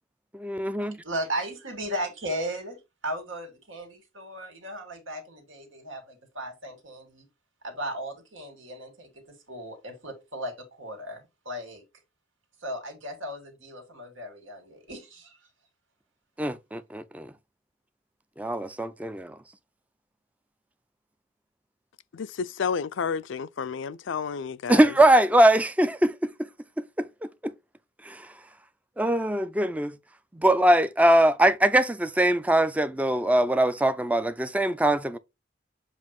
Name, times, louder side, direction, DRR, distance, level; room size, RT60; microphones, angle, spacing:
voice 1, 0.3-1.0 16.4-17.3 18.4-19.4 24.7-26.5 27.0-27.5 28.0-28.3 29.0-30.0 30.3-35.2, right 1 dB, 5° right, 0.4 m, -22 dB
voice 2, 1.0-2.8 3.0-7.2 7.6-9.1 9.5-11.8 12.6-15.4, right 1 dB, 85° right, 2.2 m, -36 dB
voice 3, 22.1-24.8, left 6 dB, 75° left, 0.4 m, -31 dB
7.3 x 2.5 x 5.2 m
head